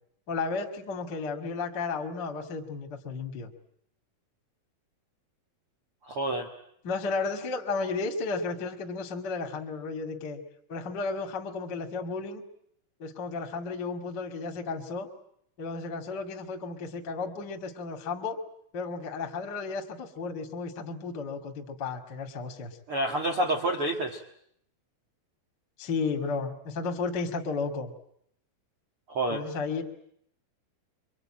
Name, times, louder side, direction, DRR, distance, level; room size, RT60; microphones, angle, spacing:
voice 1, 0.3-3.5 6.8-10.4 10.7-12.4 13.0-15.1 15.6-18.4 18.7-22.8 25.8-27.9 29.3-29.8, left 4 dB, 40° left, 4 dB, 1.5 m, -33 dB
voice 2, 6.0-6.5 22.9-24.2 29.1-29.4, right 1 dB, 70° right, 2 dB, 1.3 m, -28 dB
26.0 x 24.5 x 8.9 m, 0.71 s
omnidirectional pair, 5.8 m